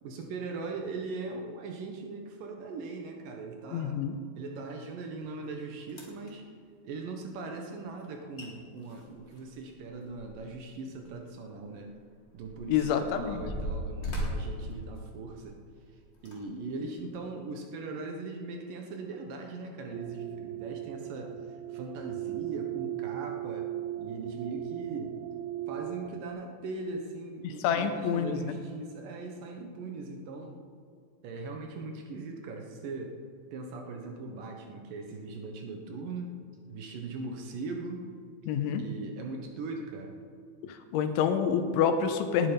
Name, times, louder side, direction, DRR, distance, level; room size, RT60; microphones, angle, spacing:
voice 1, 0.0-4.0 4.4-6.4 6.8-11.9 12.3-15.6 16.2-21.3 21.7-23.7 24.0-25.2 25.7-30.6 31.2-33.2 33.5-36.4 36.7-38.0 38.8-40.2, right 3 dB, 65° right, 2 dB, 2.3 m, -40 dB
voice 2, 3.7-4.2 12.7-13.4 27.4-28.5 38.5-38.8 40.6-42.5, left 7 dB, 85° left, 8 dB, 3.3 m, -28 dB
sound 1, 5.4-5.5 5.9-6.3 8.0-8.1 8.4-8.5 8.8-10.6 11.0-11.1 11.8-15.5 16.1-16.4 17.0-17.1, equal, 25° left, 1.3 m, -38 dB
sound 2, 19.9-26.3, right 14 dB, 80° right, 3.0 m, -37 dB
19.0 x 10.5 x 5.2 m, 2.3 s
omnidirectional pair, 5.4 m